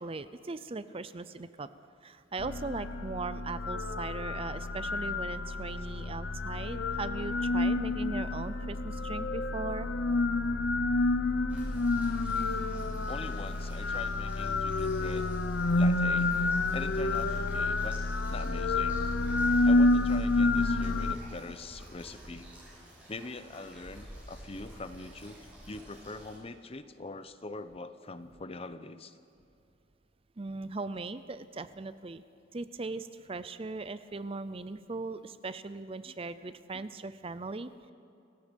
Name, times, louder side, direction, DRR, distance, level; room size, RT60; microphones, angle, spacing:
voice 1, 0.0-1.7 2.0-9.9 30.4-32.2 32.5-37.7, right 3 dB, 30° right, 13 dB, 0.6 m, -39 dB
sound 1, 2.4-21.1, left 2 dB, 85° left, 0.8 m, -29 dB
sound 2, 11.5-26.4, equal, 5° right, 5.9 m, -51 dB
voice 2, 13.1-15.3 15.7-16.3 16.7-18.0 18.3-19.0 19.6-22.5 23.1-25.4 25.7-29.2 36.1-36.2 36.7-36.8, left 2 dB, 30° left, 12 dB, 0.8 m, -43 dB
30.0 x 16.5 x 5.3 m, 2.6 s
head